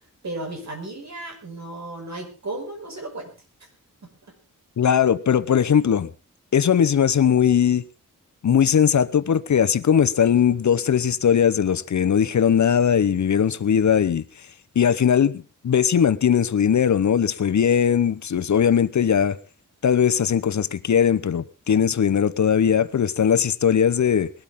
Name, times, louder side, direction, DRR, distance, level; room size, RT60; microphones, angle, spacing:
voice 1, 0.2-3.3 4.0-4.1 13.9-14.0, right 2 dB, 60° right, 5.5 m, -34 dB
voice 2, 4.8-6.1 6.5-7.8 8.4-14.2 14.8-19.4 19.8-24.3, left 8 dB, 60° left, 0.9 m, -19 dB
20.5 x 13.0 x 3.7 m
wide cardioid pair, 135°, 32 cm